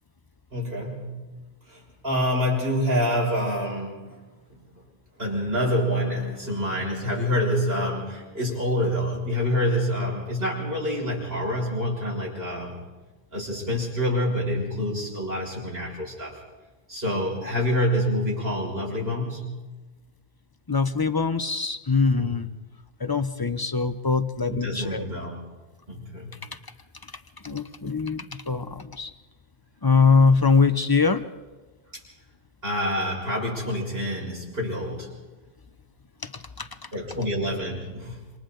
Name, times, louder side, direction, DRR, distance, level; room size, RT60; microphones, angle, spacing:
voice 1, 0.5-1.2 1.7-4.2 5.2-12.8 13.3-16.4 16.9-19.6 22.1-22.4 24.5-25.4 25.9-26.3 32.6-35.1 36.9-38.3, equal, 60° right, -4 dB, 6.6 m, -27 dB
voice 2, 20.7-22.5 23.0-25.0 27.4-29.1 29.8-31.2 36.6-36.7, left 4 dB, 25° left, 11 dB, 0.8 m, -22 dB
28.0 x 26.5 x 3.9 m, 1.2 s
omnidirectional pair, 1.1 m